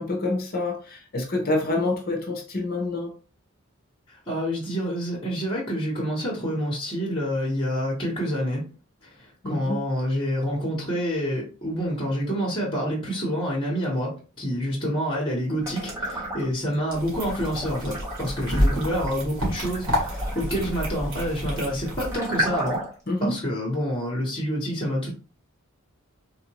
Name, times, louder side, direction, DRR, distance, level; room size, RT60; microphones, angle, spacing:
voice 1, 0.0-3.2 9.4-9.8 23.1-23.4, left 2 dB, 45° left, 0.7 m, -27 dB
voice 2, 4.1-8.6 9.0-22.8 23.2-25.1, equal, 25° left, 1.0 m, -28 dB
sound 1, 15.6-16.7 17.1-23.1, right 1 dB, 15° right, 1.0 m, -33 dB
sound 2, 16.9-22.2, equal, 75° right, 1.8 m, -29 dB
3.6 x 2.5 x 2.9 m
head